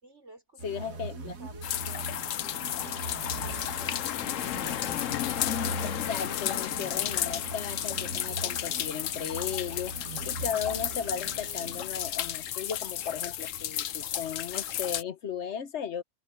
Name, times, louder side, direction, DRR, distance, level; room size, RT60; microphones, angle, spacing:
voice 1, 0.0-5.0, right 2 dB, 55° right, 5.3 m, -53 dB
voice 2, 0.6-1.3 5.8-16.0, left 7 dB, 60° left, 1.3 m, -36 dB
sound 1, 0.6-12.3, right 3 dB, 85° right, 2.1 m, -41 dB
sound 2, 1.6-15.0, left 11 dB, 75° left, 1.1 m, -33 dB
open air
omnidirectional pair, 1.4 m